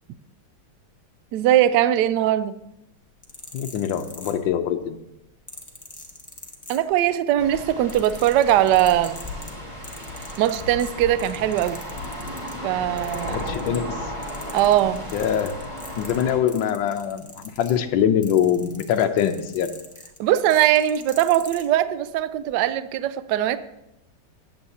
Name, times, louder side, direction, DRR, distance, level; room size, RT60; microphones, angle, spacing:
voice 1, 1.3-2.6 6.7-9.2 10.4-11.8 12.6-13.4 14.5-15.0 20.2-23.6, right 12 dB, 80° right, 13 dB, 0.9 m, -20 dB
sound 1, 3.1-4.8 5.5-7.2 7.5-12.6 13.0-14.0 14.2-21.7 22.4-22.6, left 2 dB, 15° left, 0.6 m, -43 dB
voice 2, 3.5-5.0 13.3-14.0 15.1-15.6 16.0-19.7, left 9 dB, 70° left, 7 dB, 1.4 m, -23 dB
sound 2, 7.4-16.4, left 1 dB, 15° right, 1.9 m, -34 dB
14.5 x 8.8 x 2.8 m, 0.87 s
omnidirectional pair, 2.4 m